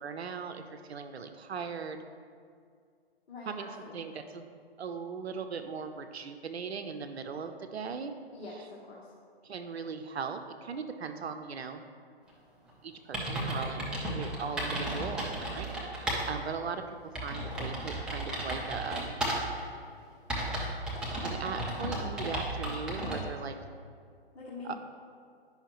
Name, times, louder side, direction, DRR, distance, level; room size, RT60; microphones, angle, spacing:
voice 1, 0.0-2.0 3.5-4.5 4.8-8.1 9.4-11.8 12.8-13.8 14.1-16.8 17.2-19.1 21.2-23.5 24.6-24.8, right 5 dB, 80° right, 8 dB, 0.7 m, -39 dB
voice 2, 3.3-4.0 8.3-9.1 22.9-23.3 24.3-24.8, left 3 dB, 75° left, -5 dB, 1.4 m, -44 dB
sound 1, 12.7-12.8 13.1-16.3 16.6-16.7 17.1-19.6 20.3-23.2, right 1 dB, 5° right, 0.5 m, -34 dB
9.7 x 5.6 x 3.0 m, 2.2 s
hypercardioid pair, 135°, 32 cm